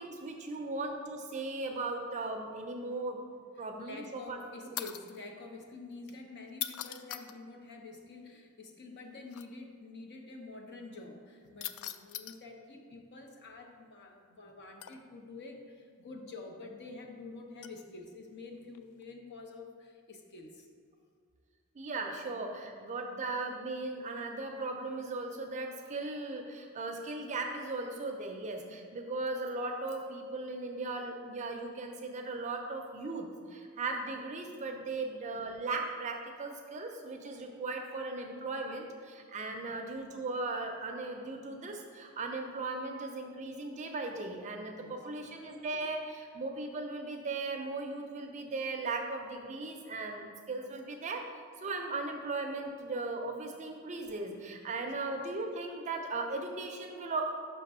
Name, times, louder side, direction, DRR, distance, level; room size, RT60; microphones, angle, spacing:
voice 1, 0.0-3.2 3.6-4.4 21.7-51.3 51.6-57.3, right 3 dB, 35° right, 3 dB, 0.5 m, -37 dB
voice 2, 3.8-20.7 39.4-39.6 44.7-45.1, left 3 dB, 55° left, 3 dB, 0.7 m, -48 dB
sound 1, 4.8-5.2 6.5-7.4 9.3-9.4 11.6-12.4 14.8-15.2 17.6-17.8 18.7-19.0, left 11 dB, 70° left, 0.3 m, -40 dB
5.8 x 3.4 x 5.4 m, 2.2 s
head